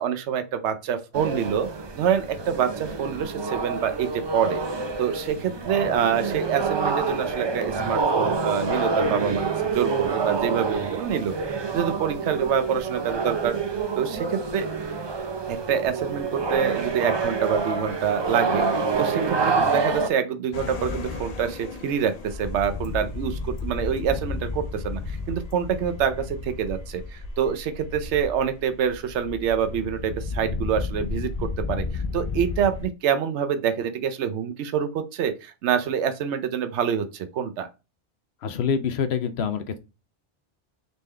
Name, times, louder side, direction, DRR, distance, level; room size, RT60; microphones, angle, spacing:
voice 1, 0.0-1.7 1.9-4.6 5.0-11.3 11.7-13.6 14.0-14.7 15.5-37.7, right 8 dB, 80° right, 0.9 m, -26 dB
sound 1, 1.1-20.1, right 4 dB, 35° right, 0.4 m, -27 dB
sound 2, 20.5-32.9, left 4 dB, 45° left, 0.6 m, -33 dB
voice 2, 38.4-39.8, left 6 dB, 70° left, 0.9 m, -26 dB
4.1 x 3.6 x 3.2 m
omnidirectional pair, 1.2 m